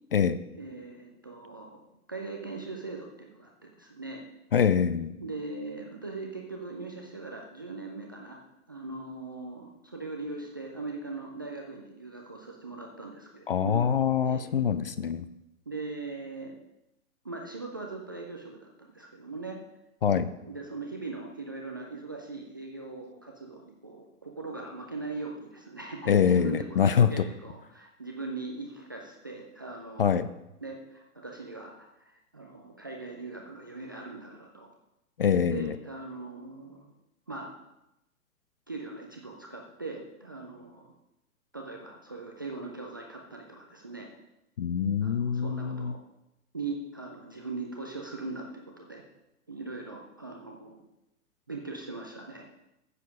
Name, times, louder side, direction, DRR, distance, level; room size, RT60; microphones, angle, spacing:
voice 1, 0.5-1.8 2.1-4.3 5.2-8.4 8.7-13.8 14.3-14.5 15.7-16.5 17.2-19.6 20.3-30.2 30.6-34.7 35.4-36.9 37.3-37.5 38.7-40.9 41.5-44.1 45.0-46.0 46.5-49.0 49.5-50.8 51.5-52.5, right 3 dB, 15° right, 0 dB, 0.4 m, -40 dB
voice 2, 4.5-5.1 13.5-15.2 20.0-20.3 26.1-27.2 30.0-30.3 35.2-35.7 44.6-45.9, left 7 dB, 40° left, 13 dB, 0.5 m, -24 dB
9.7 x 7.4 x 5.2 m, 0.89 s
figure-of-eight pair, 115°, 45 cm